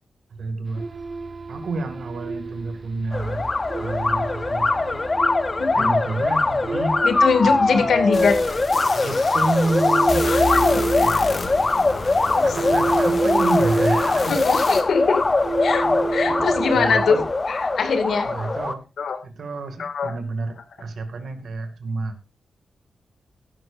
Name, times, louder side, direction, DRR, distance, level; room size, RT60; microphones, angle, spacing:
voice 1, 0.3-0.9 1.5-3.5 3.8-5.0 5.7-7.0 7.4-7.9 9.0-10.5 12.4-14.4 16.7-17.2 18.2-18.9 19.2-22.2, right 3 dB, 55° right, 7 dB, 2.3 m, -29 dB
sound 1, 0.7-17.3, right 3 dB, 30° right, 0.8 m, -29 dB
sound 2, 3.1-18.7, left 3 dB, 20° left, 0.8 m, -22 dB
voice 2, 5.6-5.9 7.0-8.4 10.2-11.3 12.3-12.5 14.3-15.2 15.6-15.9 16.1-17.2 17.5-18.3 19.0-19.2 19.8-20.1, left 5 dB, 60° left, 6 dB, 2.3 m, -22 dB
sound 3, 8.1-14.8, left 3 dB, 35° left, 1.9 m, -32 dB
16.5 x 12.0 x 2.6 m, 0.27 s
wide cardioid pair, 170°, 0 cm